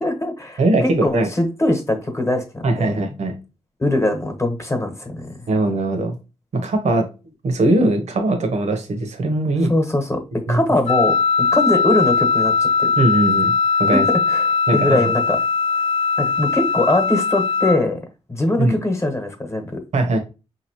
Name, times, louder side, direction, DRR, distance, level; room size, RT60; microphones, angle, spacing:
voice 1, 0.0-2.9 3.8-5.3 9.7-10.2 10.5-12.9 13.9-14.0 14.3-14.4 14.7-15.4 16.2-18.0 18.3-19.8, left 1 dB, 25° left, 4 dB, 1.1 m, -21 dB
voice 2, 0.6-1.3 2.6-3.4 5.5-6.2 6.5-7.1 7.4-9.7 10.5-10.6 13.0-13.5 13.8-14.1 14.7-15.0 18.6-18.7 19.9-20.2, right 2 dB, 75° right, 5 dB, 1.0 m, -20 dB
Wind instrument woodwind instrument, 10.9-17.8, left 5 dB, 70° left, 0.7 m, -19 dB
4.8 x 2.9 x 3.0 m, 0.30 s
wide cardioid pair, 100°, 12 cm